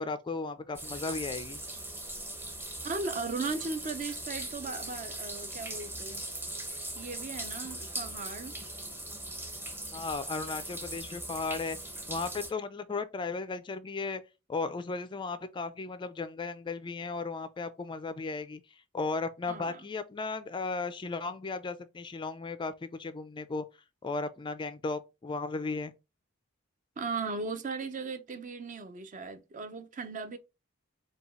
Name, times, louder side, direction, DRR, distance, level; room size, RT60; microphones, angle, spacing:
voice 1, 0.0-1.6 9.9-14.2 14.5-23.7 24.0-25.9, left 3 dB, 20° left, 0.3 m, -35 dB
sound 1, 0.7-12.5, right 1 dB, 10° right, 0.8 m, -40 dB
voice 2, 2.8-6.2 7.0-8.5 19.5-19.8 27.0-30.4, right 4 dB, 35° right, 0.5 m, -37 dB
4.9 x 2.3 x 3.5 m
head